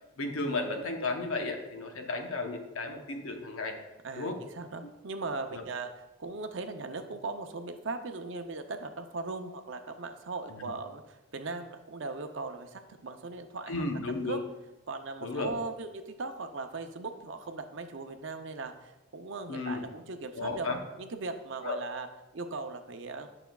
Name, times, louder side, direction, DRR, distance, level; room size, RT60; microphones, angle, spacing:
voice 1, 0.2-3.8 4.1-4.4 4.8-4.9 5.5-5.6 10.5-10.7 13.7-14.4 15.2-15.5 19.5-19.8 20.3-20.8 21.6-21.8, left 3 dB, 85° left, 4 dB, 0.9 m, -34 dB
voice 2, 4.0-5.9 6.2-14.4 14.9-20.7 21.0-22.1 22.3-23.3, right 3 dB, 60° right, 7 dB, 0.6 m, -39 dB
9.0 x 5.8 x 2.3 m, 1.0 s
head